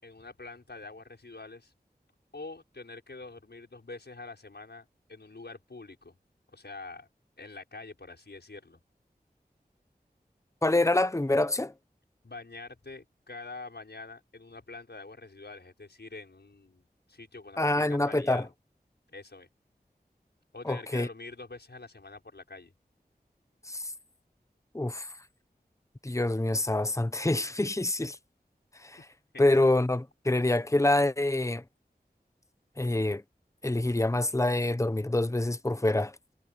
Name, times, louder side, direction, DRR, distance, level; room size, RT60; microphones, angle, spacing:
voice 1, 0.0-1.7 2.3-6.1 6.5-7.1 7.4-8.8 12.2-18.5 19.1-19.5 20.5-22.7 29.3-29.4, left 3 dB, 85° left, 6.2 m, -45 dB
voice 2, 10.6-11.7 17.6-18.5 20.6-21.1 23.6-23.9 24.7-25.1 26.0-28.2 28.8-29.0 29.4-31.6 32.8-33.2 33.6-36.2, left 2 dB, 20° left, 0.8 m, -26 dB
wide cardioid pair, 50°, 17 cm